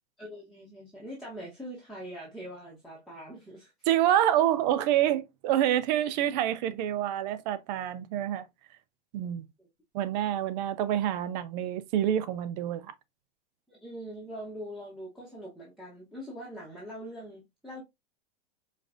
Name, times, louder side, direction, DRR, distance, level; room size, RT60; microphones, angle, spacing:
voice 1, 0.2-3.7 9.6-9.7 13.7-17.8, equal, ahead, 1.0 m, -43 dB
voice 2, 3.9-8.5 9.1-9.5 9.9-12.9, right 11 dB, 40° right, 0.4 m, -27 dB
5.1 x 2.5 x 2.4 m
supercardioid pair, 140°, 34 cm